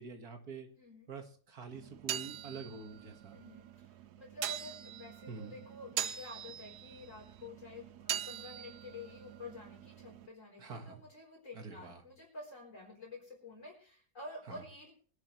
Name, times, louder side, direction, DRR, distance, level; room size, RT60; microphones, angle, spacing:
voice 1, 0.0-0.7 1.1-3.4 5.3-5.6 10.6-11.0 11.5-12.0 14.5-14.6, right 4 dB, 70° right, 5 dB, 2.2 m, -46 dB
voice 2, 0.8-1.1 3.3-14.9, left 3 dB, 50° left, 0 dB, 4.3 m, -50 dB
sound 1, 1.7-10.3, right 11 dB, 85° right, 1.4 m, -43 dB
22.0 x 11.0 x 3.1 m, 0.42 s
omnidirectional pair, 1.7 m